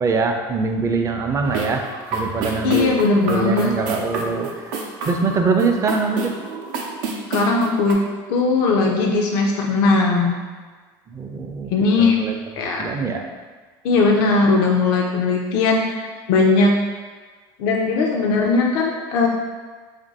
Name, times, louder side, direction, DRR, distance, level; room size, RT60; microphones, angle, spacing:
voice 1, 0.0-2.9 3.3-4.6 5.1-6.3 11.1-11.7 12.0-13.3, right 4 dB, 25° right, 4 dB, 0.4 m, -23 dB
sound 1, 1.4-7.9, right 3 dB, 85° right, 0.6 m, -30 dB
voice 2, 2.6-3.7 7.3-8.0 8.3-10.3 11.7-12.2 12.5-12.8 13.8-16.8 17.6-19.3, left 3 dB, 75° left, 0 dB, 0.4 m, -18 dB
2.9 x 2.5 x 4.0 m, 1.4 s
supercardioid pair, 100°, 11 cm